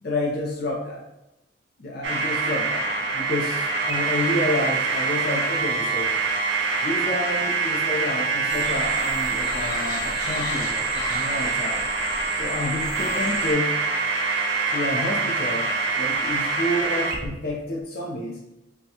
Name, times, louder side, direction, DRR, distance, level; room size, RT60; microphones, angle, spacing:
voice 1, 0.0-1.0 1.8-2.8 3.1-6.1 6.8-11.9 12.3-13.7 14.6-18.4, left 1 dB, 55° left, -4 dB, 0.6 m, -29 dB
sound 1, 2.0-17.3, right 4 dB, 70° right, 0.6 m, -25 dB
sound 2, 8.5-13.5, left 1 dB, 20° left, 1.0 m, -34 dB
5.5 x 2.3 x 2.8 m, 0.92 s
head